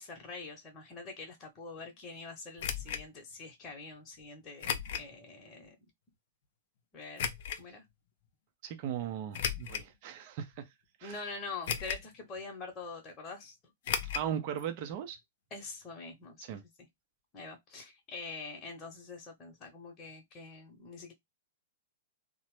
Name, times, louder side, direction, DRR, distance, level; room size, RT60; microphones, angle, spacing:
voice 1, 0.0-5.8 6.9-7.2 7.6-7.8 11.0-13.6 15.5-16.5 17.3-21.1, left 4 dB, 30° left, 0.9 m, -45 dB
sound 1, 2.6-3.0 4.6-5.1 5.7-5.8 7.2-7.6 9.3-9.9 10.5-10.6 11.7-12.1 12.4-12.5 13.8-14.3 14.6-14.7 14.9-15.0, left 8 dB, 60° left, 0.5 m, -35 dB
voice 2, 8.6-10.7 11.0-11.2 14.1-15.2 16.4-16.6, right 9 dB, 50° right, 0.5 m, -38 dB
2.8 x 2.1 x 3.1 m
hypercardioid pair, 110°, 0 cm